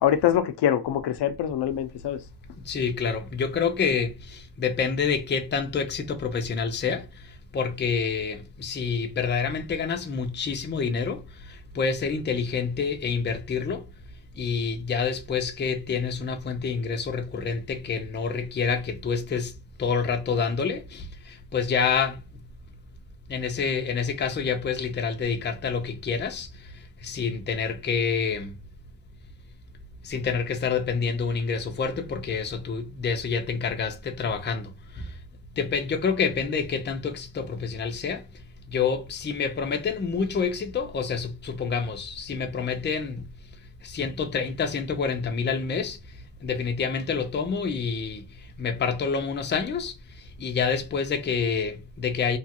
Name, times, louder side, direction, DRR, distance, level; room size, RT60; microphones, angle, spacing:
voice 1, 0.0-2.2, left 10 dB, 85° left, 0.5 m, -24 dB
voice 2, 2.6-13.9 14.3-22.2 23.3-28.6 30.0-35.2 35.6-43.3 43.8-52.4, left 5 dB, 30° left, 0.5 m, -28 dB
3.0 x 2.3 x 2.7 m
wide cardioid pair, 160°, 40 cm